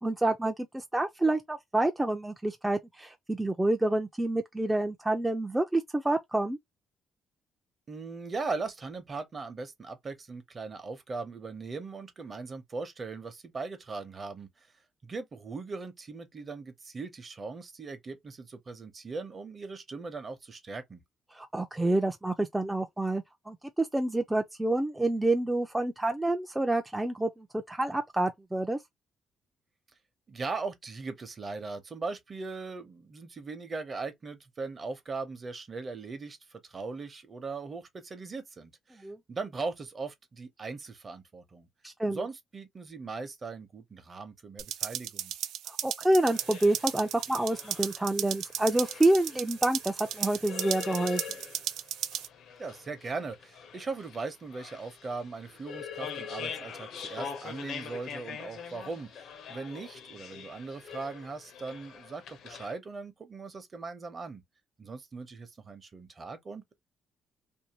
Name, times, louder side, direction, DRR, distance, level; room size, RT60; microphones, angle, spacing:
voice 1, 0.0-6.6 21.3-28.8 39.0-39.2 41.8-42.2 45.7-51.2, right 2 dB, 10° right, 0.4 m, -28 dB
voice 2, 7.9-14.5 15.0-21.0 30.3-41.7 42.1-45.3 52.6-64.4 64.8-66.7, right 4 dB, 40° right, 0.8 m, -39 dB
sound 1, 44.6-52.3, right 11 dB, 85° right, 0.3 m, -35 dB
sound 2, 46.2-62.7, left 7 dB, 75° left, 0.7 m, -44 dB
2.6 x 2.2 x 2.9 m
cardioid pair, 90°, 0 cm